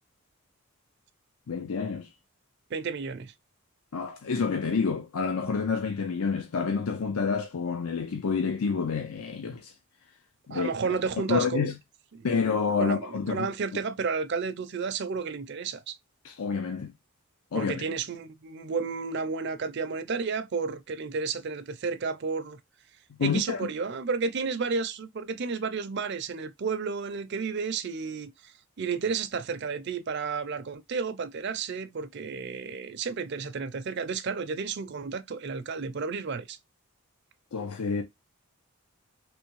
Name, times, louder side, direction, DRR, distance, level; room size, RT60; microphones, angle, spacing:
voice 1, 1.5-2.1 3.9-9.7 10.5-11.0 11.3-11.8 12.2-13.5 16.2-16.9 17.5-17.8 23.2-23.7 37.5-38.0, left 5 dB, 80° left, 0.5 m, -28 dB
voice 2, 2.7-3.3 10.5-11.7 12.1-12.3 12.8-16.0 17.5-22.6 23.2-36.6, right 5 dB, 50° right, 0.5 m, -32 dB
3.4 x 3.0 x 3.0 m
head